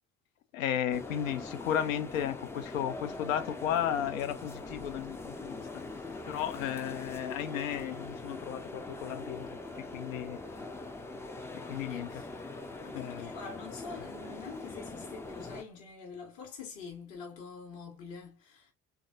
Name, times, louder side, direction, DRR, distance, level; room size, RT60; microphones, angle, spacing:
voice 1, 0.5-5.8 6.2-9.5 9.8-10.4 11.6-12.2 12.9-13.3, left 10 dB, 75° left, 0.5 m, -34 dB
sound 1, 0.9-15.6, left 2 dB, 5° left, 0.3 m, -42 dB
voice 2, 11.8-12.4 12.8-18.7, left 5 dB, 55° left, 1.0 m, -46 dB
3.3 x 2.3 x 2.3 m
figure-of-eight pair, 50°, 41 cm